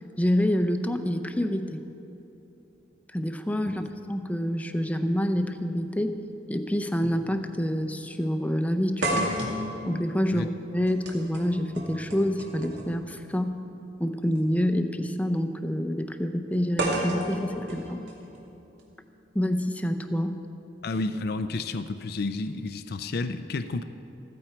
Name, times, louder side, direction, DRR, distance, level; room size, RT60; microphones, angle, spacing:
voice 1, 0.2-1.8 3.1-3.8 4.1-6.2 6.5-9.3 9.9-13.6 14.0-18.0 19.3-20.4, equal, 10° left, 8 dB, 0.6 m, -27 dB
sound 1, 5.8-5.9 7.0-7.2 7.6-7.7 9.0-13.0 14.2-14.4 16.8-18.8, right 1 dB, 75° right, 2.3 m, -32 dB
voice 2, 20.8-23.8, left 3 dB, 60° left, 10 dB, 0.5 m, -31 dB
14.5 x 14.5 x 4.5 m, 2.9 s
head